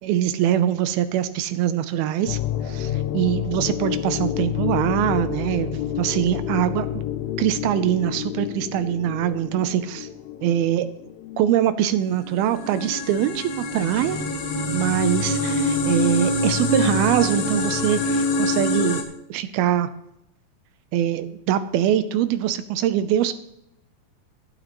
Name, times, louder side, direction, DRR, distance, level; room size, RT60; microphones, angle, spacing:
voice 1, 0.0-2.4 2.6-7.0 7.4-10.1 10.4-10.9 11.4-14.2 14.7-19.0 19.3-19.9 20.9-23.3, right 11 dB, 80° right, 12 dB, 2.4 m, -23 dB
sound 1, 2.3-11.4, left 11 dB, 90° left, 2.7 m, -29 dB
sound 2, 12.2-19.0, left 1 dB, 65° left, 2.8 m, -24 dB
16.5 x 11.5 x 3.1 m, 0.80 s
omnidirectional pair, 4.7 m